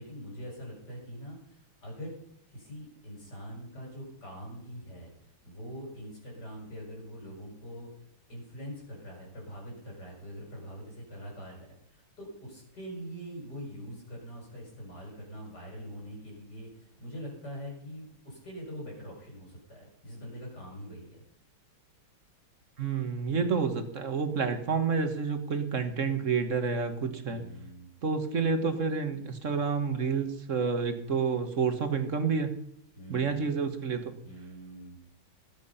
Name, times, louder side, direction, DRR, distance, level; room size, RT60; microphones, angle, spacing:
voice 1, 0.0-2.1 2.5-5.1 5.4-7.9 8.3-21.2 27.2-27.9 33.0-33.5 34.2-35.0, equal, 50° left, -1 dB, 7.2 m, -43 dB
voice 2, 22.8-27.5 28.0-32.5 33.1-34.1, right 5 dB, 40° right, 8 dB, 1.6 m, -29 dB
20.0 x 8.8 x 5.6 m, 0.75 s
omnidirectional pair, 2.2 m